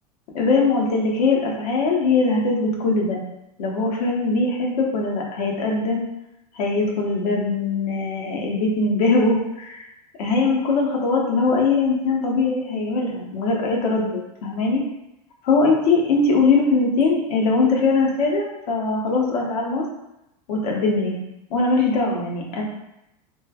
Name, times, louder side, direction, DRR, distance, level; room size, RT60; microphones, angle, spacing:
voice 1, 0.3-3.2 3.6-6.0 6.5-9.9 10.2-14.8 15.4-19.8 20.5-21.2 21.5-22.6, left 3 dB, 70° left, -1 dB, 0.8 m, -21 dB
3.1 x 2.2 x 2.3 m, 0.87 s
hypercardioid pair, 95°, 20 cm